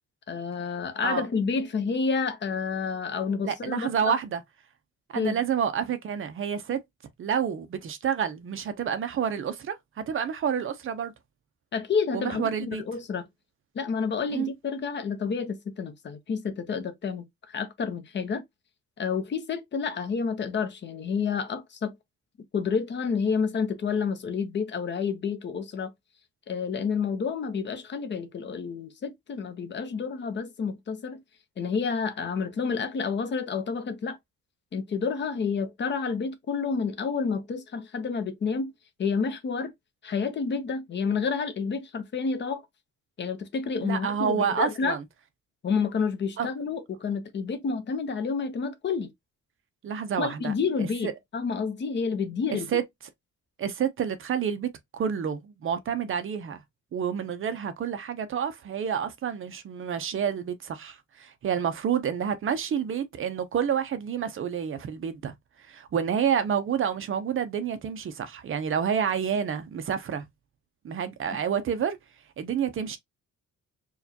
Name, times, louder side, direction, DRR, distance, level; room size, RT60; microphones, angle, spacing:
voice 1, 0.3-4.2 5.1-5.4 11.7-13.3 13.7-18.4 19.0-21.9 22.5-25.9 26.5-31.2 31.6-34.2 34.7-38.7 39.0-39.7 40.0-42.6 43.2-45.0 45.6-49.1 50.2-52.7, left 5 dB, 35° left, 0.6 m, -29 dB
voice 2, 3.4-4.4 5.1-6.8 7.2-11.1 12.1-12.8 14.3-14.5 43.8-45.0 46.4-46.5 49.8-50.5 51.0-51.1 52.5-52.8 53.6-56.6 56.9-65.3 65.7-70.2 70.8-72.0 72.4-73.0, right 8 dB, 45° right, 0.5 m, -29 dB
4.6 x 2.2 x 2.7 m
wide cardioid pair, 180°, 30 cm